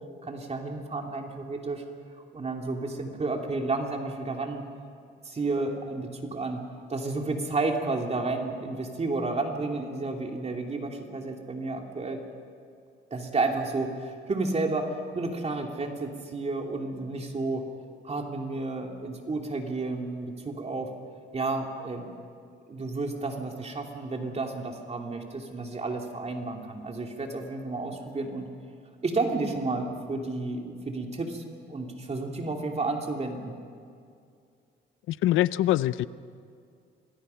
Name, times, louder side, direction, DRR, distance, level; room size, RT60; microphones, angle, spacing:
voice 1, 0.2-1.8 2.3-4.7 5.2-6.6 6.9-12.2 13.1-17.6 18.0-20.9 21.3-22.1 22.7-28.5 29.0-33.5, right 3 dB, 35° right, 2 dB, 2.9 m, -31 dB
voice 2, 35.1-36.1, left 14 dB, 85° left, 17 dB, 0.6 m, -24 dB
27.0 x 19.5 x 5.8 m, 2.3 s
cardioid pair, 90°, 20 cm